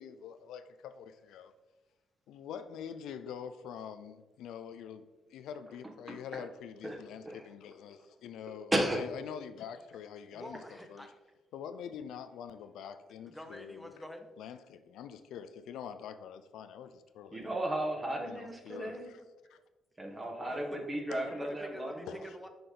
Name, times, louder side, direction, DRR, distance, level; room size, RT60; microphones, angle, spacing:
voice 1, 0.0-1.5 2.3-10.6 10.9-11.1 11.5-13.9 14.4-17.5 18.3-19.2 19.5-19.6 21.1-21.4 22.1-22.3, left 8 dB, 85° left, 10 dB, 0.4 m, -45 dB
voice 2, 6.1-6.4 6.8-7.0 7.2-7.4 8.7-9.0 17.3-19.1 20.0-22.2, right 1 dB, 20° right, 1 dB, 1.4 m, -34 dB
voice 3, 10.3-11.2 13.2-14.3 18.4-19.3 20.2-20.8 21.4-22.5, equal, 5° left, 6 dB, 0.8 m, -48 dB
6.0 x 5.1 x 3.8 m, 1.1 s
cardioid pair, 90°, 0 cm